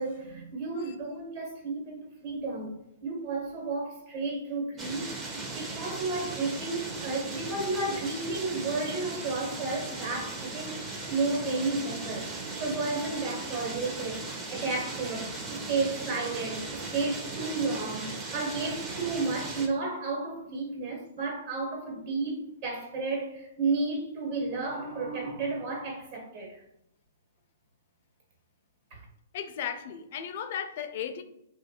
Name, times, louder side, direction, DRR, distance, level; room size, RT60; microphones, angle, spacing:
voice 1, 0.0-2.8 3.0-10.8 11.1-12.3 12.6-14.2 14.5-26.6 28.9-29.0, right 3 dB, 45° right, 1.2 m, -32 dB
sound 1, 4.8-19.7, right 3 dB, 20° right, 0.6 m, -38 dB
voice 2, 29.3-31.2, left 8 dB, 50° left, 0.4 m, -35 dB
3.0 x 2.4 x 2.8 m
hypercardioid pair, 130°, 0 cm